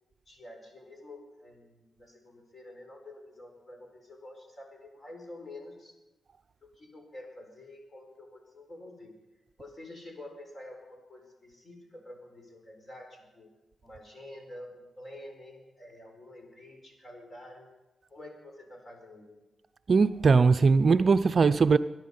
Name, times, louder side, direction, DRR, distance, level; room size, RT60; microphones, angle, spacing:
voice 1, 0.3-5.9 6.6-9.2 9.6-13.5 13.8-17.7 18.1-19.4, left 1 dB, 40° left, 4.6 m, -48 dB
voice 2, 19.9-21.8, right 4 dB, 50° right, 0.5 m, -20 dB
22.5 x 11.0 x 5.5 m
cardioid pair, 90°, 0 cm